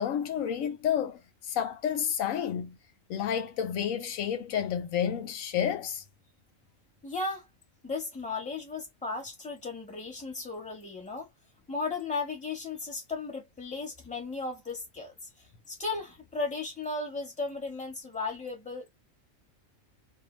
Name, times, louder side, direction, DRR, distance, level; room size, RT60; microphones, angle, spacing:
voice 1, 0.0-2.8 3.1-6.0, left 9 dB, 85° left, 1.1 m, -30 dB
voice 2, 7.0-7.5 7.8-11.3 11.7-15.1 15.7-18.9, left 3 dB, 5° left, 1.0 m, -35 dB
2.4 x 2.2 x 3.0 m
omnidirectional pair, 1.3 m